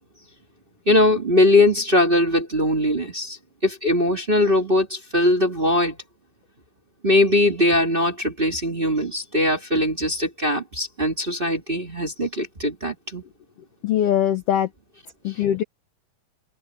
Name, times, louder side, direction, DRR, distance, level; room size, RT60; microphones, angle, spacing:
voice 1, 0.8-6.0 7.0-13.2, left 1 dB, 20° right, 1.6 m, -21 dB
voice 2, 13.8-14.7 15.2-15.6, left 10 dB, 70° left, 1.4 m, -21 dB
omnidirectional pair, 3.7 m